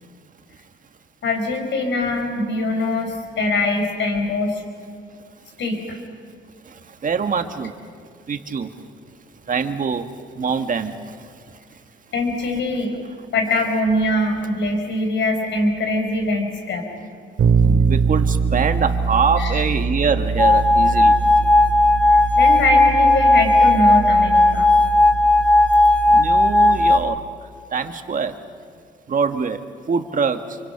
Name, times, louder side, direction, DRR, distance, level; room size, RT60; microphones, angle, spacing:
voice 1, 1.2-4.6 5.6-6.0 12.1-12.9 13.3-16.9 19.4-19.6 22.3-24.7, left 2 dB, 65° left, 4 dB, 5.2 m, -22 dB
voice 2, 6.6-7.7 8.3-8.8 9.5-11.6 17.6-21.2 26.1-27.2 27.7-28.4 29.1-29.6 29.9-30.6, right 5 dB, 40° right, 7 dB, 1.7 m, -24 dB
Bass guitar, 17.4-27.2, right 4 dB, 60° right, 2.3 m, -23 dB
sound 1, 20.4-27.0, left 2 dB, 5° left, 1.5 m, -15 dB
28.5 x 24.5 x 6.0 m, 2.2 s
cardioid pair, 90°, 20 cm